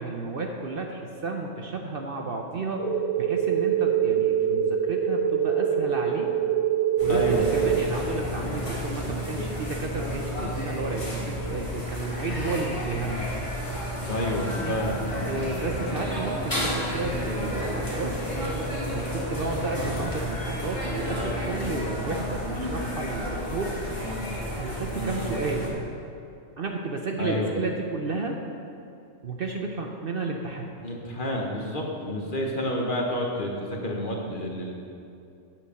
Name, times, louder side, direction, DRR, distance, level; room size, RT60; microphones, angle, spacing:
voice 1, 0.0-6.3 7.0-13.3 14.5-14.8 15.2-18.1 18.9-23.7 24.6-25.7 26.6-28.4 29.2-30.7, right 3 dB, 50° right, 2 dB, 0.9 m, -32 dB
sound 1, 2.8-7.8, right 9 dB, 25° right, 2.2 m, -24 dB
sound 2, 7.0-25.7, equal, 25° left, 2.2 m, -31 dB
voice 2, 7.1-7.5 14.1-15.0 25.0-25.3 27.2-27.5 30.8-34.7, left 1 dB, 40° left, -1 dB, 1.3 m, -29 dB
8.1 x 7.1 x 6.7 m, 2.6 s
omnidirectional pair, 1.3 m